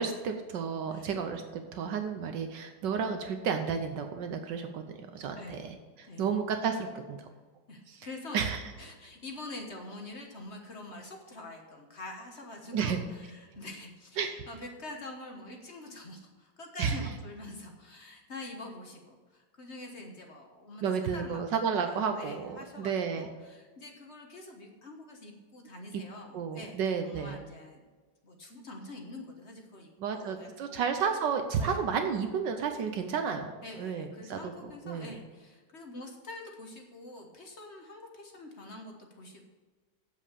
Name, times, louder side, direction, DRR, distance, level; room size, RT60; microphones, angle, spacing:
voice 1, 0.0-7.3 7.9-8.1 8.3-8.6 12.7-13.0 14.2-14.3 16.8-17.0 20.8-23.3 26.3-27.4 30.0-33.5 33.8-34.5 34.8-35.2, right 6 dB, 75° right, 6 dB, 1.4 m, -32 dB
voice 2, 7.7-8.4 8.8-21.4 21.7-26.8 27.0-27.8 28.2-30.9 31.6-31.8 33.6-39.5, left 2 dB, 40° left, 2 dB, 1.4 m, -45 dB
8.6 x 7.5 x 6.7 m, 1.3 s
omnidirectional pair, 2.0 m